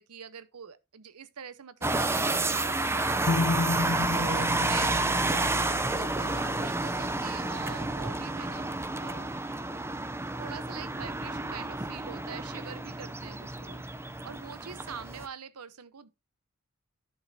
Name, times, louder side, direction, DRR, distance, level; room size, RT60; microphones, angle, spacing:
voice 1, 0.0-3.3 4.1-9.4 10.3-13.9 14.2-16.1, right 7 dB, 85° right, 0.8 m, -44 dB
sound 1, 1.8-15.3, right 2 dB, 10° right, 0.5 m, -30 dB
sound 2, 3.3-7.2, left 3 dB, 55° left, 0.5 m, -32 dB
11.5 x 7.4 x 2.7 m
head